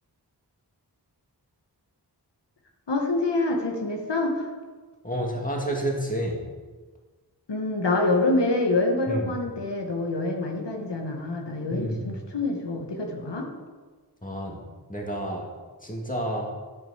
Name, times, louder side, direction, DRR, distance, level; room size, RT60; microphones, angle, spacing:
voice 1, 2.9-4.5 7.5-13.5, left 2 dB, 90° left, 2 dB, 1.3 m, -26 dB
voice 2, 5.0-6.4 9.1-9.3 11.7-12.1 14.2-14.6 14.9-15.5 15.8-16.5, right 1 dB, 20° left, -1 dB, 2.1 m, -29 dB
10.5 x 6.1 x 5.7 m, 1.4 s
wide cardioid pair, 60°, 41 cm